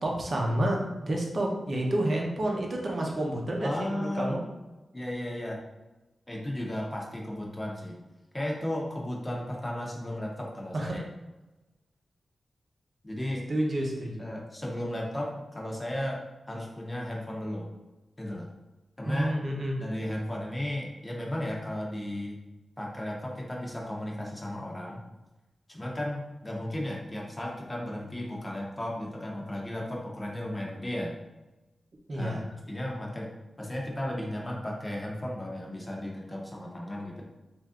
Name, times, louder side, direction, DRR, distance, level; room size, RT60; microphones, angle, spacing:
voice 1, 0.0-4.4 10.7-11.0 13.5-14.3 19.0-19.8 32.1-32.4, right 1 dB, 55° right, 0 dB, 0.8 m, -29 dB
voice 2, 3.6-4.3 4.9-5.6 6.3-8.0 8.3-11.0 13.0-13.4 14.2-17.7 18.2-18.5 19.0-19.4 19.8-22.4 22.8-25.0 25.7-31.1 32.1-32.4 32.7-33.3 33.6-37.2, left 1 dB, 20° left, -2 dB, 0.8 m, -34 dB
3.3 x 2.6 x 3.6 m, 1.1 s
cardioid pair, 75°, 0 cm